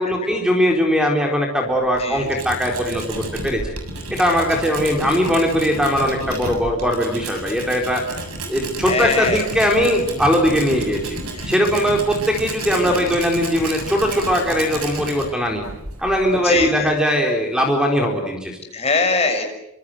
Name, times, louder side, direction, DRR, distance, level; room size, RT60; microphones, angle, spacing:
voice 1, 0.0-3.7 4.1-8.0 8.5-11.2 11.5-15.6 16.0-18.6, equal, 5° right, 2 dB, 4.1 m, -20 dB
Tools, 1.7-17.1, right 2 dB, 85° right, 7.3 m, -32 dB
voice 2, 8.9-9.4 11.3-11.5 12.9-13.0 16.4-16.9 18.7-19.5, left 3 dB, 30° left, 4 dB, 6.3 m, -22 dB
28.0 x 26.5 x 7.8 m, 0.86 s
head